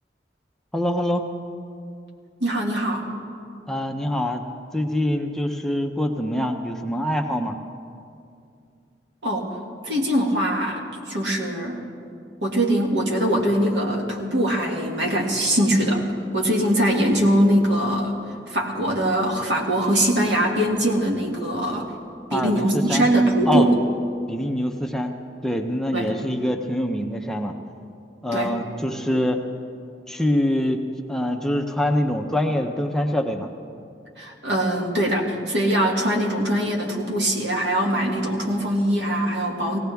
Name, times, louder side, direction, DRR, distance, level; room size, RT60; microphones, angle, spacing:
voice 1, 0.7-1.3 3.7-4.4 4.7-7.6 22.3-23.1 23.5-23.7 24.3-25.1 25.4-27.5 28.2-29.4 30.1-30.8 31.1-33.5, left 1 dB, 5° left, 3 dB, 0.7 m, -24 dB
voice 2, 2.4-3.1 9.2-9.5 9.8-11.8 12.4-16.1 16.3-18.1 18.5-21.9 22.3-23.8 25.9-26.1 28.3-28.5 34.2-39.8, right 1 dB, 80° right, 0 dB, 2.0 m, -22 dB
19.0 x 17.0 x 3.5 m, 2.4 s
head